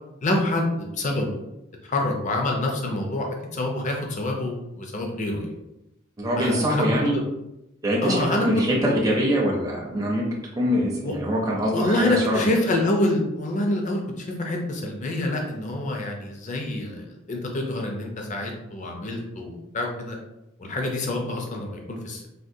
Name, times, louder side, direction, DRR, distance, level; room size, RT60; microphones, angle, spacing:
voice 1, 0.2-1.4 1.8-5.5 6.4-7.1 8.0-8.6 11.0-11.1 11.7-20.2 20.6-22.3, left 1 dB, 35° left, 1 dB, 0.4 m, -27 dB
voice 2, 6.2-7.2 7.8-10.2 10.6-12.4, equal, 15° right, -3 dB, 0.5 m, -23 dB
3.5 x 2.2 x 2.6 m, 0.90 s
head